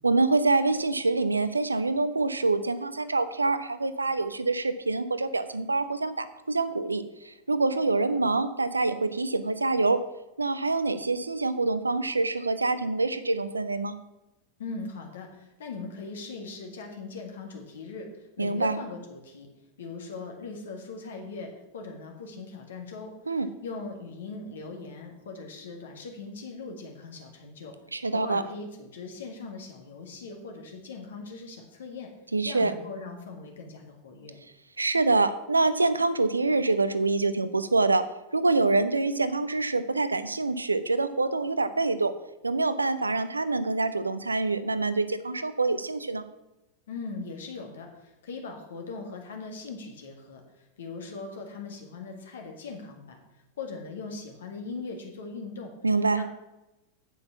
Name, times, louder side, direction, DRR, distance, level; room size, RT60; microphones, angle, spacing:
voice 1, 0.0-10.0 10.4-14.0 18.4-18.8 23.3-23.5 27.9-28.4 32.3-32.7 34.8-38.0 38.3-42.1 42.4-46.2 55.8-56.2, right 3 dB, 80° right, 13 dB, 0.6 m, -26 dB
voice 2, 14.6-19.5 19.8-27.8 28.1-32.1 32.4-34.4 46.9-53.2 53.6-55.7 56.1-56.2, left 4 dB, 65° left, 3 dB, 1.9 m, -40 dB
8.1 x 8.0 x 5.8 m, 0.97 s
figure-of-eight pair, 90°, 0 cm